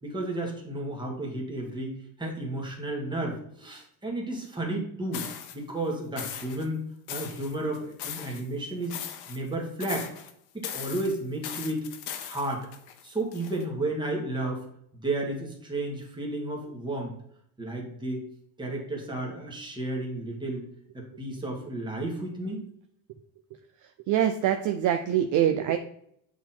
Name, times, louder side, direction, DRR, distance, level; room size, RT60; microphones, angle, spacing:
voice 1, 0.0-1.9 2.2-5.3 5.5-9.0 9.3-10.1 10.5-11.9 12.2-12.7 13.0-14.6 14.9-17.1 17.6-18.2 18.6-20.6 20.9-22.6, right 2 dB, 10° right, -1 dB, 1.7 m, -32 dB
sound 1, 5.1-5.5 6.2-6.7 7.1-8.4 8.8-9.5 9.8-10.3 10.6-13.6, left 9 dB, 60° left, 1.0 m, -38 dB
voice 2, 24.1-25.8, right 10 dB, 45° right, 7 dB, 0.5 m, -24 dB
8.2 x 3.9 x 4.3 m, 0.69 s
cardioid pair, 160°, 46 cm